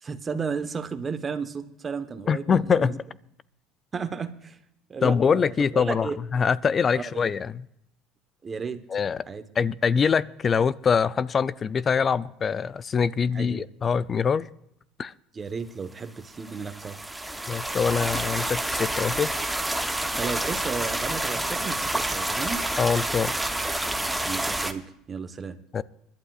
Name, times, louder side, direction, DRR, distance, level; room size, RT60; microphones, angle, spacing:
voice 1, 0.0-2.9 3.9-4.6 4.9-6.2 6.9-7.2 8.4-8.8 9.3-9.5 13.3-13.7 15.3-17.0 20.1-22.6 24.2-25.6, right 5 dB, 25° right, 9 dB, 1.1 m, -33 dB
voice 2, 2.3-3.0 5.0-7.6 8.9-9.2 9.6-14.5 15.0-15.1 17.5-19.3 22.8-23.3 25.7-25.8, left 6 dB, 30° left, 19 dB, 0.4 m, -24 dB
sound 1, 16.3-24.7, right 1 dB, 5° right, 0.9 m, -28 dB
25.5 x 12.0 x 2.4 m, 0.76 s
supercardioid pair, 115°, 0 cm